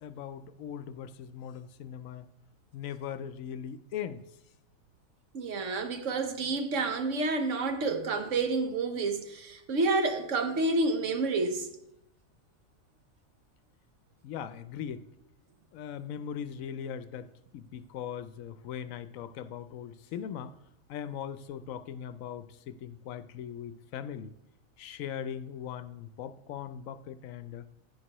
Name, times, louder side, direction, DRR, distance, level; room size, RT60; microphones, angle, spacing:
voice 1, 0.0-2.3 2.7-4.2 14.2-15.1 15.7-20.6 20.9-24.3 24.8-27.6, left 8 dB, 75° left, 1.0 m, -40 dB
voice 2, 5.3-11.7, right 3 dB, 65° right, 1.2 m, -29 dB
11.0 x 9.9 x 3.0 m
omnidirectional pair, 1.4 m